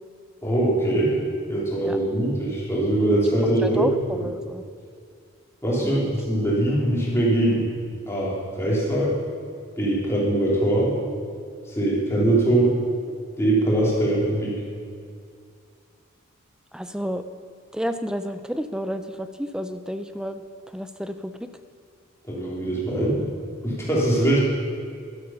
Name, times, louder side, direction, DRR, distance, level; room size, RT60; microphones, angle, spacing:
voice 1, 0.4-1.1 1.5-3.9 5.6-7.7 8.1-9.1 9.8-10.9 11.7-12.7 13.4-14.6 22.3-23.2 23.6-24.4, right 1 dB, 10° left, -6 dB, 3.3 m, -22 dB
voice 2, 3.6-4.6 5.8-6.2 16.7-17.2 17.7-20.4 20.7-21.5, equal, 5° right, 10 dB, 0.4 m, -30 dB
12.0 x 11.5 x 5.7 m, 2.3 s
head